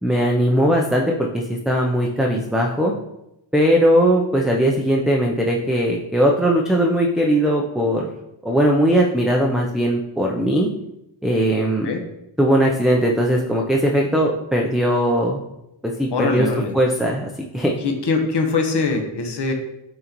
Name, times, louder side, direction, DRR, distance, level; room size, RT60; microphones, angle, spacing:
voice 1, 0.0-2.9 3.5-8.1 8.4-10.7 11.2-11.9 12.4-15.4 16.0-16.5 16.7-17.8, equal, ahead, -1 dB, 0.4 m, -19 dB
voice 2, 16.1-16.7 17.8-19.5, left 4 dB, 55° left, 3 dB, 1.1 m, -22 dB
10.5 x 3.9 x 3.0 m, 0.88 s
wide cardioid pair, 135°, 48 cm